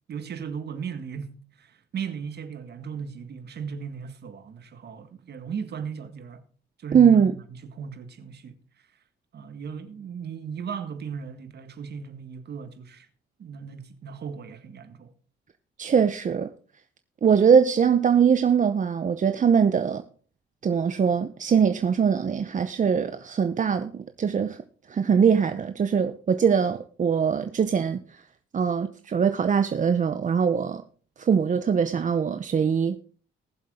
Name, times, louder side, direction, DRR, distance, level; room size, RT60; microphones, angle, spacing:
voice 1, 0.1-6.5 6.8-7.3 7.6-8.6 9.3-13.1 13.4-15.1, right 6 dB, 55° right, 1.7 m, -37 dB
voice 2, 6.9-7.3 15.8-16.5 17.2-20.0 20.6-24.6 24.9-28.2 28.5-30.8 31.2-33.0, right 7 dB, 40° right, 0.8 m, -22 dB
19.5 x 7.5 x 3.7 m
cardioid pair, 90°, 20 cm